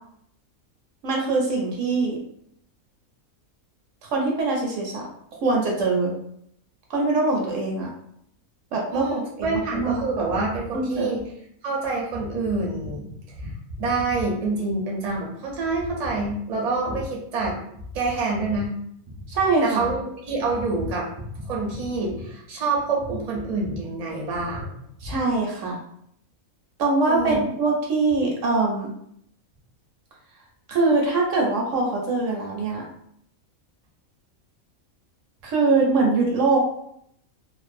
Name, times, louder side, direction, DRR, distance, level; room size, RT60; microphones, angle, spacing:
voice 1, 1.0-2.2 4.0-5.1 5.4-6.1 6.9-7.9 8.7-10.0 10.7-11.1 19.3-19.9 25.0-25.8 26.8-28.9 30.7-32.8 35.4-36.6, right 3 dB, 70° right, -1 dB, 0.9 m, -23 dB
voice 2, 8.9-11.2 11.6-13.1 13.4-17.6 17.9-18.7 19.6-24.7 25.0-25.1 27.1-27.4, right 3 dB, 45° right, -3 dB, 0.5 m, -27 dB
2.5 x 2.0 x 2.5 m, 0.70 s
omnidirectional pair, 1.5 m